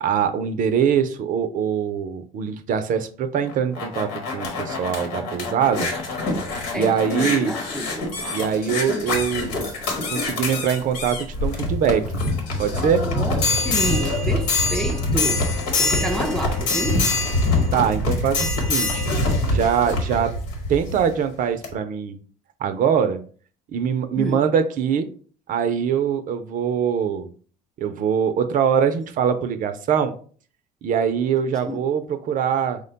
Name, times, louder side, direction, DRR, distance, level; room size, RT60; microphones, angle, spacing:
voice 1, 0.0-5.9 6.7-7.5 8.3-9.6 10.1-12.0 12.6-13.0 17.7-19.0 19.5-20.3 20.7-22.2 22.6-23.2 23.7-25.1 25.5-27.3 27.8-30.1 30.8-32.8, right 7 dB, 55° right, 0.5 m, -23 dB
sound 1, 3.4-21.1 21.6-21.7, left 2 dB, 85° left, 1.3 m, -24 dB
voice 2, 6.7-8.1 13.0-15.5 15.8-17.1 24.2-24.4 31.7-31.8, equal, 5° left, 0.5 m, -29 dB
4.8 x 2.2 x 3.9 m
supercardioid pair, 90°, 17 cm